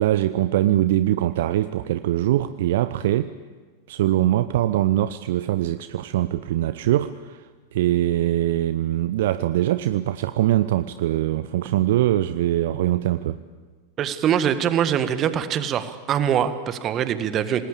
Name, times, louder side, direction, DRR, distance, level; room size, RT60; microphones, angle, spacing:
voice 1, 0.0-3.3 3.9-13.4, right 13 dB, 55° right, 13 dB, 0.7 m, -22 dB
voice 2, 14.0-17.7, right 9 dB, 30° right, 11 dB, 1.7 m, -23 dB
27.5 x 19.5 x 8.6 m, 1.5 s
figure-of-eight pair, 90°, 0 cm